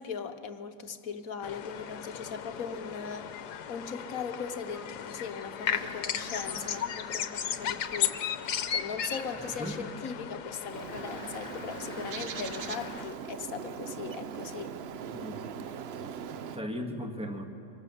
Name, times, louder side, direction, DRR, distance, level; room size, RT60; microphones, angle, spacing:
voice 1, 0.0-8.2 8.7-14.8, left 6 dB, 60° left, 8 dB, 1.3 m, -39 dB
sound 1, 1.4-13.1, left 9 dB, 80° left, 1.4 m, -36 dB
sound 2, 5.6-6.8 7.3-8.0 8.4-8.8 9.1-9.8 10.9-12.9, right 1 dB, 30° right, 6.6 m, -47 dB
voice 2, 9.3-9.9 15.1-15.7 16.0-17.5, equal, 5° right, 3 dB, 1.5 m, -39 dB
Bird, 10.6-16.6, right 7 dB, 60° right, 0.6 m, -40 dB
25.0 x 20.0 x 7.0 m, 2.9 s
omnidirectional pair, 1.7 m